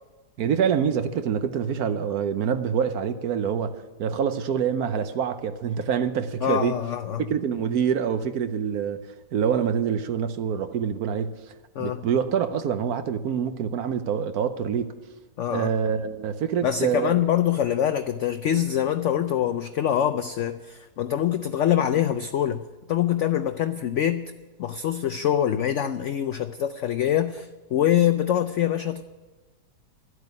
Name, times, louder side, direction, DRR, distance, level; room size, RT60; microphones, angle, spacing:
voice 1, 0.4-6.8 7.2-9.0 9.3-11.4 11.8-15.0 15.5-17.1, right 7 dB, 65° right, 1.2 m, -26 dB
voice 2, 6.4-7.3 11.8-12.0 15.4-15.7 16.6-24.3 24.6-29.0, left 10 dB, 80° left, 0.6 m, -24 dB
11.5 x 8.1 x 9.7 m
omnidirectional pair, 1.8 m